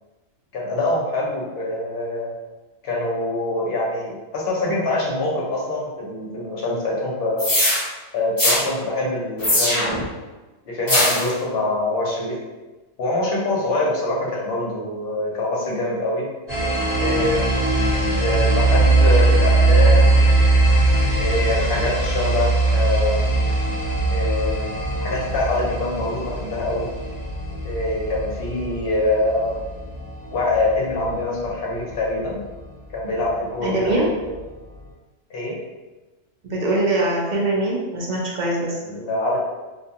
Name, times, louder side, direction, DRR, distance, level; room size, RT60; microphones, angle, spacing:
voice 1, 0.5-2.3 2.8-7.5 8.1-10.1 10.7-12.4 13.0-16.3 17.0-20.3 21.2-23.4 24.1-26.9 27.6-29.7 30.3-32.4 32.9-34.0 34.3-34.4 35.3-35.6 38.8-39.4, left 2 dB, 55° left, -4 dB, 0.8 m, -24 dB
sound 1, 7.4-7.8 8.4-8.6 9.4-10.0 10.9-11.3, left 1 dB, 30° left, 0.4 m, -19 dB
sound 2, 16.5-31.9, right 2 dB, 35° right, 1.0 m, -20 dB
voice 2, 33.6-34.0 36.4-38.8, right 2 dB, 55° right, -3 dB, 0.5 m, -22 dB
2.5 x 2.3 x 2.8 m, 1.2 s
omnidirectional pair, 1.3 m